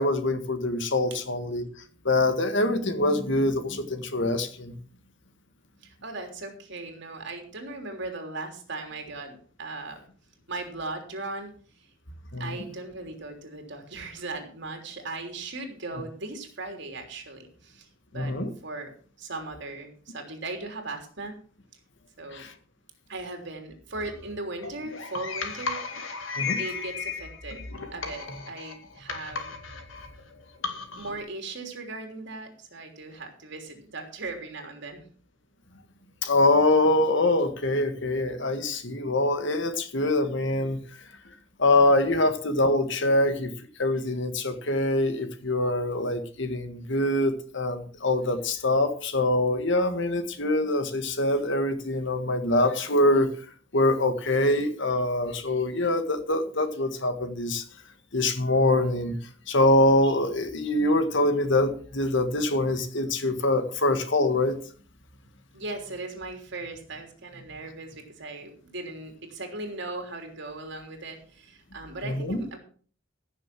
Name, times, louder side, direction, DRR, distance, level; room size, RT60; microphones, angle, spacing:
voice 1, 0.0-1.7 2.1-4.8 12.3-12.4 18.1-18.5 22.3-22.5 26.4-26.6 36.2-40.8 41.6-43.5 43.8-53.3 53.7-57.6 58.1-59.2 59.5-64.6 72.0-72.4, left 2 dB, 65° left, 9 dB, 1.8 m, -24 dB
voice 2, 5.8-10.0 10.5-11.5 11.8-11.9 12.4-18.3 18.6-18.9 19.2-21.3 22.2-22.5 23.1-26.1 26.6-27.6 27.9-29.5 31.0-35.0 65.5-72.6, right 2 dB, 65° right, 4 dB, 3.3 m, -38 dB
sound 1, 23.9-31.2, left 5 dB, 85° left, 2.2 m, -35 dB
15.5 x 6.9 x 6.1 m, 0.43 s
head